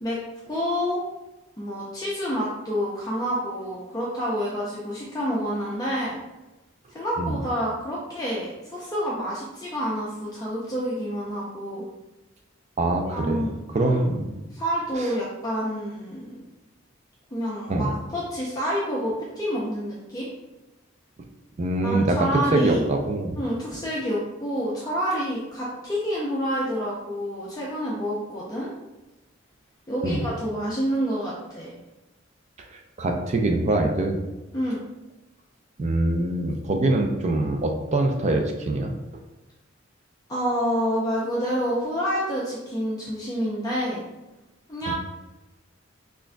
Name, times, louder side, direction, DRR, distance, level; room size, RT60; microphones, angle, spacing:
voice 1, 0.5-1.0 1.6-6.2 6.9-11.8 13.0-14.0 14.5-16.4 17.3-20.3 21.8-22.8 23.4-28.7 29.9-31.7 34.5-34.8 40.3-44.0 44.7-44.9, equal, 20° left, -6 dB, 0.5 m, -28 dB
voice 2, 12.8-13.4 13.7-14.3 17.7-17.9 21.6-22.2 22.5-23.4 30.0-30.2 32.7-34.2 35.8-38.9 44.9-45.0, right 2 dB, 35° right, 3 dB, 0.4 m, -24 dB
5.9 x 2.5 x 2.2 m, 1.0 s
head